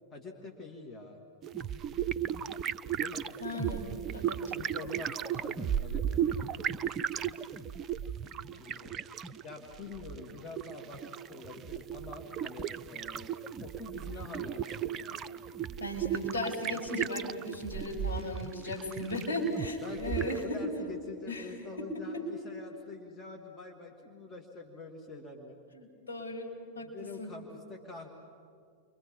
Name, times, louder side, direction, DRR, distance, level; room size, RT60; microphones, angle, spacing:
voice 1, 0.1-1.2 3.0-3.2 4.5-6.9 8.6-9.0 9.4-13.3 13.6-15.3 19.8-25.6 26.8-28.1, left 3 dB, 25° left, 2 dB, 2.5 m, -46 dB
sound 1, 1.4-20.5, right 9 dB, 25° right, 0.6 m, -36 dB
voice 2, 3.4-3.9 4.1-4.5 15.8-20.6 21.3-21.5 22.1-22.2 25.7-26.9 27.2-27.3, left 1 dB, 70° left, -2 dB, 6.0 m, -36 dB
30.0 x 24.5 x 5.5 m, 2.3 s
figure-of-eight pair, 90°, 0 cm